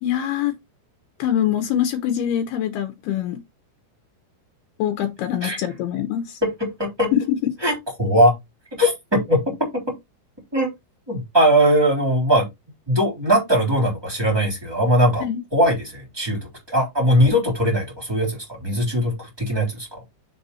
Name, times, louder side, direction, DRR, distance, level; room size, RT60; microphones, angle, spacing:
voice 1, 0.0-0.6 1.2-3.4 4.8-6.4 7.1-7.5 15.2-15.4, left 10 dB, 90° left, 2.2 m, -24 dB
voice 2, 7.6-8.4 8.8-9.4 10.5-10.7 11.1-12.5 12.9-15.2 15.5-16.4 16.7-20.0, equal, 5° right, 2.0 m, -20 dB
6.9 x 4.0 x 4.1 m
omnidirectional pair, 5.6 m